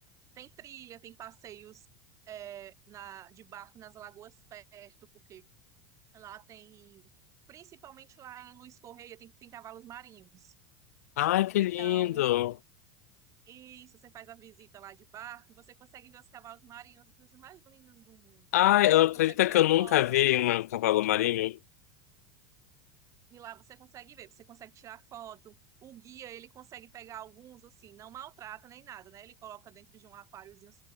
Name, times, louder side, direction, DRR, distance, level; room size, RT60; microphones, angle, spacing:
voice 1, 0.3-1.9 2.3-4.9 5.3-5.5 6.1-7.1 7.5-10.5 11.6-12.3 13.5-19.0 19.3-20.4 23.3-30.8, right 11 dB, 40° right, 4.6 m, -49 dB
voice 2, 11.2-12.5 18.5-21.6, left 15 dB, 85° left, 0.4 m, -24 dB
hypercardioid pair, 105°, 8 cm